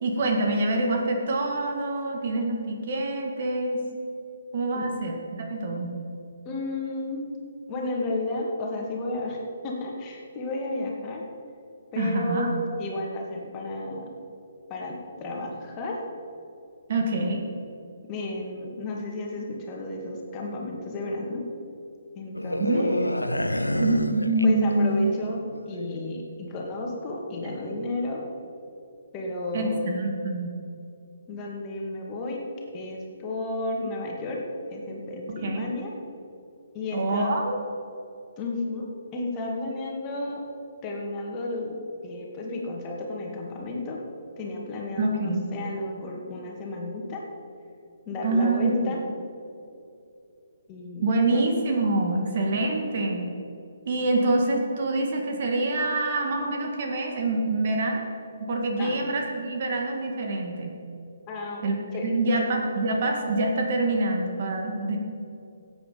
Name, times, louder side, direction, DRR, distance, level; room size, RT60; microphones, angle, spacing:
voice 1, 0.0-3.8 4.5-5.9 12.0-12.5 16.9-17.5 22.6-22.9 23.7-25.1 27.4-27.8 29.5-30.5 35.3-35.7 36.9-37.6 45.0-45.4 48.2-48.8 51.0-53.3 53.9-58.0 58.4-60.7 61.6-65.0, right 2 dB, 45° right, 2 dB, 2.0 m, -26 dB
voice 2, 6.4-7.3 7.7-9.4 9.6-11.3 11.9-14.1 14.7-16.0 18.1-21.4 22.2-23.1 24.4-25.4 25.7-28.2 29.1-30.0 31.3-32.5 32.7-34.4 34.7-35.9 36.7-37.4 38.4-40.4 40.8-44.0 44.4-47.2 48.1-49.0 50.7-51.5 58.8-59.0 61.3-61.6 61.9-62.1, left 2 dB, 25° left, -1 dB, 2.3 m, -32 dB
sound 1, 22.3-25.0 25.3-25.6, left 1 dB, 90° left, 0.7 m, -28 dB
16.5 x 8.5 x 5.3 m, 2.6 s
figure-of-eight pair, 135°, 0 cm